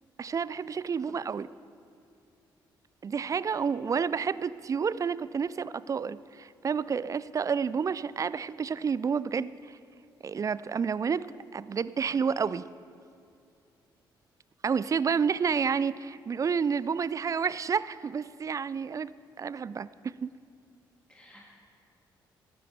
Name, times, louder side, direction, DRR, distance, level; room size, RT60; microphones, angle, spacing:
voice 1, 0.2-1.5 3.0-9.8 10.2-11.3 11.5-12.6 14.6-19.1 19.4-20.3, right 6 dB, 30° right, 18 dB, 0.3 m, -30 dB
voice 2, 3.5-3.9 21.1-21.5, left 1 dB, 10° left, -3 dB, 2.2 m, -55 dB
16.0 x 13.5 x 3.4 m, 2.5 s
figure-of-eight pair, 40°, 11 cm